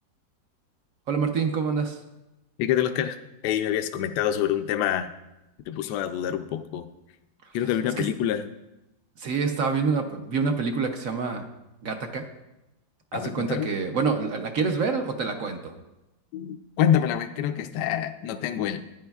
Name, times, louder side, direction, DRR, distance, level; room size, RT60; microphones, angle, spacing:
voice 1, 1.1-2.0 8.0-8.1 9.2-11.4 11.8-12.2 13.1-15.7, right 5 dB, 60° right, 5 dB, 1.0 m, -27 dB
voice 2, 2.6-3.2 3.4-5.1 5.7-6.9 7.5-8.5 13.1-13.7 16.3-18.8, left 10 dB, 75° left, 8 dB, 1.1 m, -26 dB
14.0 x 9.6 x 2.3 m, 0.94 s
omnidirectional pair, 2.0 m